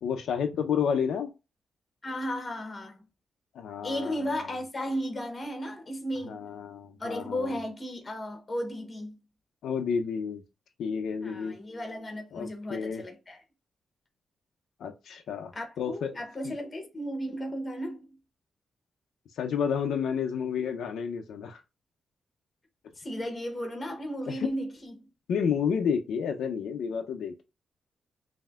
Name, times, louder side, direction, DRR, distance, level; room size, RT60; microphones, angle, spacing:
voice 1, 0.0-1.3 3.5-4.5 6.3-7.6 9.6-10.4 10.8-11.6 12.3-13.0 14.8-15.5 15.8-16.1 16.4-16.6 19.4-21.6 24.3-24.5 25.3-27.4, left 7 dB, 85° left, 0.6 m, -30 dB
voice 2, 2.0-3.0 3.8-6.5 7.0-9.2 11.2-13.4 15.5-18.2 23.0-25.0, equal, 20° left, 1.0 m, -35 dB
5.5 x 2.7 x 2.3 m
wide cardioid pair, 175°, 0 cm